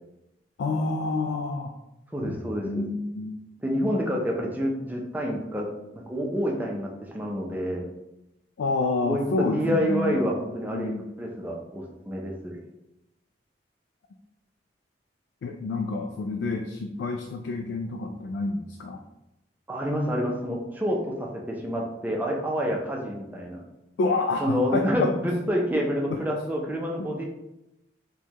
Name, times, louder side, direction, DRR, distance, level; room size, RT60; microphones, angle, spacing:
voice 1, 0.6-1.7 2.2-2.4 2.6-3.4 8.6-10.2 10.7-11.0 15.4-19.0 24.0-25.1 26.1-26.2 27.0-27.1, left 3 dB, 80° left, 3 dB, 0.3 m, -28 dB
voice 2, 2.1-2.8 3.6-7.8 9.0-10.9 11.2-12.6 19.7-23.6 24.4-27.2, equal, 10° right, -1 dB, 0.5 m, -28 dB
4.4 x 2.2 x 2.9 m, 0.89 s
head